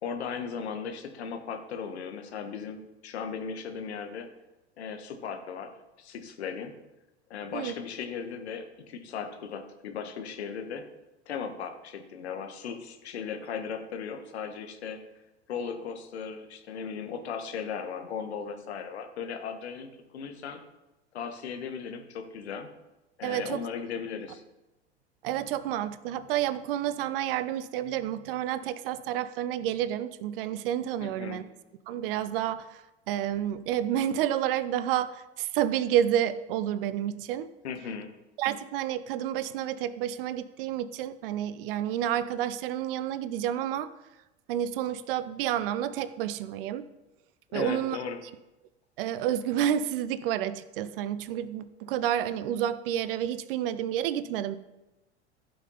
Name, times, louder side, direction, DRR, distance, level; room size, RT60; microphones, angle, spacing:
voice 1, 0.0-4.3 4.8-5.7 6.0-6.7 7.3-10.8 11.3-15.0 15.5-19.9 20.1-20.6 21.1-22.7 23.2-24.4 31.0-31.4 37.6-38.1 47.5-48.2, left 6 dB, 70° left, 6 dB, 1.4 m, -37 dB
voice 2, 23.2-23.6 25.2-31.4 31.9-32.8 33.1-37.5 38.4-43.9 44.5-46.8 47.5-48.0 49.0-54.6, right 11 dB, 55° right, 15 dB, 0.7 m, -30 dB
14.5 x 5.8 x 3.9 m, 0.99 s
figure-of-eight pair, 85°, 34 cm